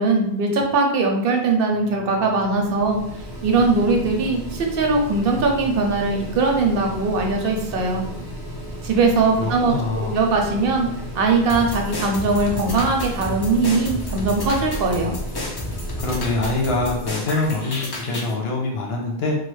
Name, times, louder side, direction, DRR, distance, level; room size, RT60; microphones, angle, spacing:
voice 1, 0.0-3.0 3.4-8.1 8.8-10.9 11.1-15.2, right 3 dB, 70° right, 2 dB, 0.8 m, -20 dB
Mechanical fan, 1.7-18.0, equal, 25° right, 0.6 m, -35 dB
voice 2, 9.4-10.2 16.0-19.4, left 2 dB, 80° left, 0 dB, 0.9 m, -24 dB
sound 1, 11.5-18.3, left 1 dB, 40° left, 0.3 m, -31 dB
3.0 x 2.1 x 3.1 m, 0.78 s
omnidirectional pair, 1.0 m